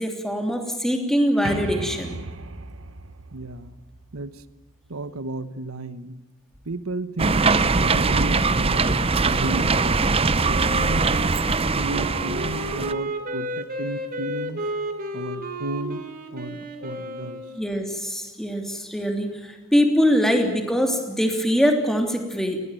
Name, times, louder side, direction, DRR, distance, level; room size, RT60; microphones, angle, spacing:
voice 1, 0.0-2.1 17.5-22.6, equal, ahead, 4 dB, 3.0 m, -23 dB
sound 1, 1.4-5.1, right 2 dB, 70° right, 1.2 m, -36 dB
voice 2, 3.3-3.8 4.1-4.4 4.9-6.2 6.6-10.0 10.5-11.4 11.7-14.6 15.1-16.1 16.3-17.4, right 2 dB, 90° right, 14 dB, 1.2 m, -33 dB
sound 2, 7.2-12.9, right 4 dB, 25° right, 0.7 m, -21 dB
Wind instrument woodwind instrument, 10.5-17.6, equal, 40° right, 3.2 m, -32 dB
21.0 x 17.5 x 9.2 m, 1.2 s
head